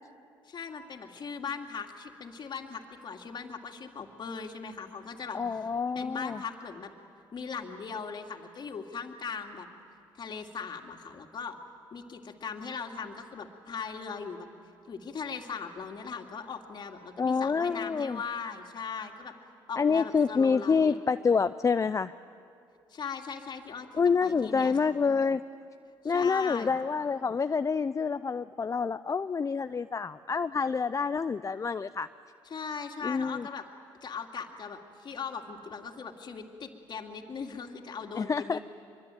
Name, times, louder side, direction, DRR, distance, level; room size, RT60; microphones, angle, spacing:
voice 1, 0.5-5.6 5.9-6.9 7.3-9.7 10.1-11.6 11.9-14.5 14.9-19.3 19.7-20.9 22.9-23.9 24.2-25.0 26.0-26.7 32.5-33.6 34.0-38.6, left 5 dB, 50° left, 4 dB, 2.6 m, -39 dB
voice 2, 5.3-6.4 17.2-18.2 19.8-22.1 23.9-25.4 26.0-32.1 33.0-33.5 38.1-38.6, left 5 dB, 30° left, 12 dB, 0.5 m, -27 dB
24.0 x 23.5 x 9.2 m, 2.5 s
supercardioid pair, 65°, 10 cm